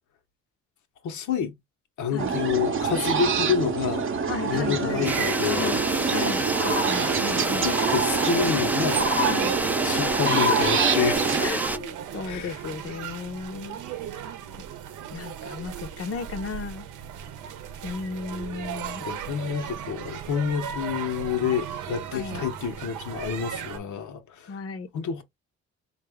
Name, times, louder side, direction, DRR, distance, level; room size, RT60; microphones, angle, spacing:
voice 1, 1.0-1.6 2.0-4.1 4.4-6.2 7.5-9.1 9.8-11.4 12.2-12.6 19.1-24.6 24.9-25.2, left 7 dB, 75° left, 1.0 m, -28 dB
sound 1, 2.2-11.5, right 5 dB, 45° right, 0.7 m, -26 dB
voice 2, 4.3-5.1 5.5-5.8 6.1-7.7 9.2-9.6 10.0-10.6 11.4-13.8 15.1-16.9 17.8-19.0 22.1-22.4 24.5-24.9, left 5 dB, 50° left, 0.8 m, -35 dB
sound 2, 4.9-23.8, right 9 dB, 80° right, 0.7 m, -37 dB
sound 3, 5.0-11.8, right 2 dB, 5° right, 0.4 m, -28 dB
3.7 x 2.5 x 3.5 m
cardioid pair, 90°, 30 cm